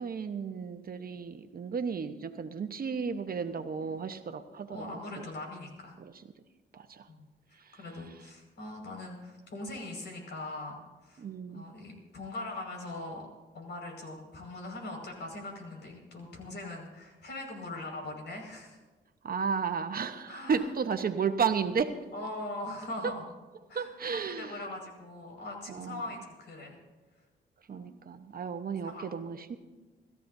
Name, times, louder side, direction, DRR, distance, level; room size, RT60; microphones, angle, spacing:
voice 1, 0.0-5.2 6.0-6.1 6.7-7.1 7.6-7.8 11.2-11.6 19.2-22.0 23.0-23.1 23.7-24.6 25.7-26.0 27.7-29.6, right 6 dB, 50° right, 8 dB, 1.0 m, -33 dB
voice 2, 4.7-6.0 7.1-7.2 7.5-13.3 13.5-18.8 20.3-20.7 22.1-23.2 23.7-26.8 27.7-27.9 28.8-29.0, left 2 dB, 65° left, 1 dB, 5.4 m, -41 dB
28.0 x 14.0 x 2.7 m, 1.3 s
cardioid pair, 80°, 19 cm